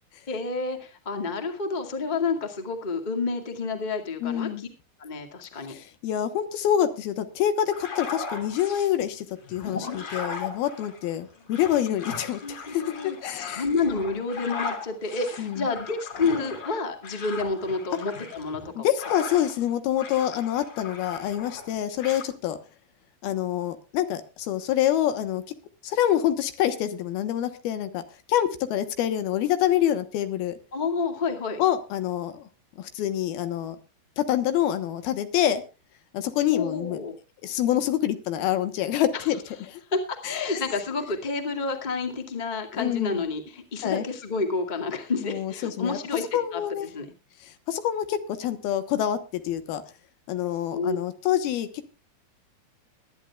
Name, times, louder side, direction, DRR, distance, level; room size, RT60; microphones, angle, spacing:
voice 1, 0.3-4.7 5.0-5.7 9.6-9.9 12.4-18.9 30.7-31.6 36.5-37.1 39.1-39.3 39.9-46.2 46.5-46.6 46.9-47.1 50.7-51.0, left 4 dB, 20° left, 4 dB, 1.4 m, -29 dB
voice 2, 4.2-4.6 5.7-13.6 15.4-15.7 18.8-22.6 23.2-25.4 25.8-30.6 31.6-32.4 32.8-33.8 34.2-35.6 36.1-37.0 37.4-39.4 39.7-39.8 40.2-40.6 42.7-43.2 43.8-44.0 45.2-46.0 46.3-46.9 47.7-49.2 49.4-49.8 50.3-51.9, left 11 dB, 80° left, 10 dB, 3.1 m, -26 dB
sound 1, 7.7-8.9 9.4-19.7 20.0-21.7 22.0-22.3, left 5 dB, 50° left, 4.3 m, -38 dB
23.0 x 11.0 x 2.4 m, 0.30 s
omnidirectional pair, 4.4 m